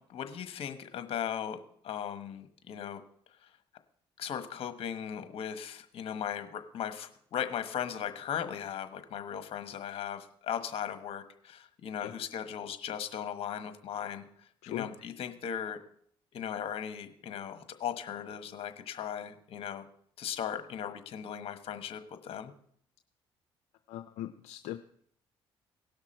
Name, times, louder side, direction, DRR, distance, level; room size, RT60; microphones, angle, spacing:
voice 1, 0.1-3.0 4.2-14.3 14.7-15.8 16.3-19.8 20.2-22.5, left 9 dB, 65° left, 9 dB, 1.2 m, -37 dB
voice 2, 23.9-24.8, left 13 dB, 85° left, 10 dB, 0.5 m, -39 dB
18.0 x 6.0 x 4.4 m, 0.64 s
supercardioid pair, 70°, 11 cm